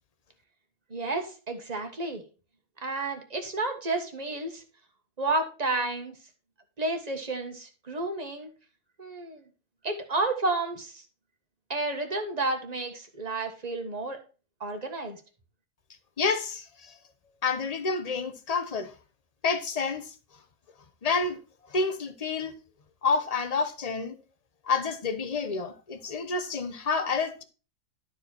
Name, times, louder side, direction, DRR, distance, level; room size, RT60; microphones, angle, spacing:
voice 1, 0.9-2.2 2.8-4.6 5.2-6.2 6.8-8.5 9.0-9.5 9.8-11.0 11.7-14.2 14.6-15.2, right 2 dB, 25° right, 1.5 m, -31 dB
voice 2, 16.2-17.0 17.4-18.9 19.4-20.1 21.0-21.4 21.7-22.5 23.0-24.1 24.6-27.4, left 4 dB, 30° left, 0.8 m, -29 dB
12.5 x 4.7 x 4.4 m
omnidirectional pair, 1.7 m